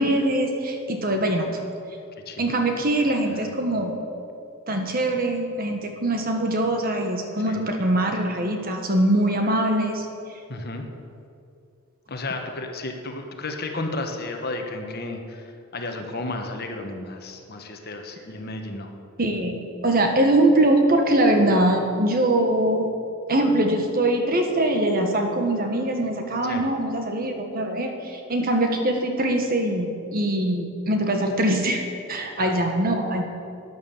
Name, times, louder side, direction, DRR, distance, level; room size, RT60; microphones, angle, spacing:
voice 1, 0.0-1.5 2.4-3.9 4.7-10.1 19.2-22.9 23.3-33.2, right 1 dB, 45° right, 4 dB, 1.4 m, -22 dB
voice 2, 10.5-10.8 12.1-18.9 26.4-26.6 32.4-32.5, left 2 dB, 45° left, 4 dB, 1.3 m, -33 dB
12.0 x 9.6 x 7.3 m, 2.6 s
head